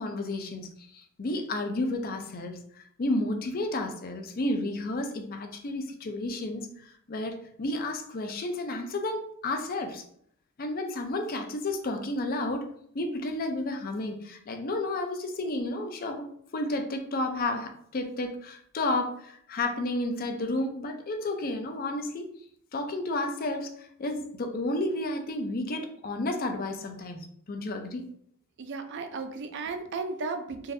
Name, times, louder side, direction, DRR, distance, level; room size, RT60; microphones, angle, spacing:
voice 1, 0.0-10.0 10.6-16.2 16.5-22.3 22.7-28.0, left 2 dB, 45° left, 5 dB, 0.5 m, -32 dB
voice 2, 28.6-30.7, right 4 dB, 55° right, 7 dB, 0.4 m, -34 dB
3.9 x 2.6 x 2.6 m, 0.66 s
head